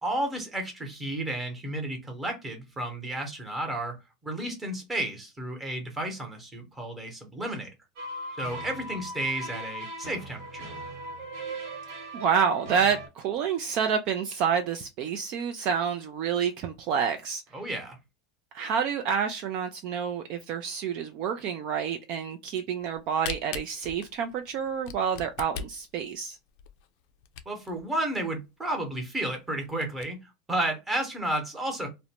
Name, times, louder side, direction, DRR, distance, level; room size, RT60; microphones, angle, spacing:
voice 1, 0.0-4.0 4.2-7.7 8.4-10.7 17.5-18.0 27.5-30.2 30.5-31.9, right 1 dB, 10° right, 0.9 m, -32 dB
sound 1, 8.0-13.1, equal, 65° right, 1.2 m, -38 dB
voice 2, 12.1-17.4 18.5-26.4, right 7 dB, 45° right, 0.3 m, -28 dB
Camera, 22.8-27.8 28.3-28.4 28.6-28.7 29.2-29.3 29.7-30.0, left 7 dB, 55° left, 0.4 m, -39 dB
2.5 x 2.1 x 2.8 m
supercardioid pair, 155°, 2 cm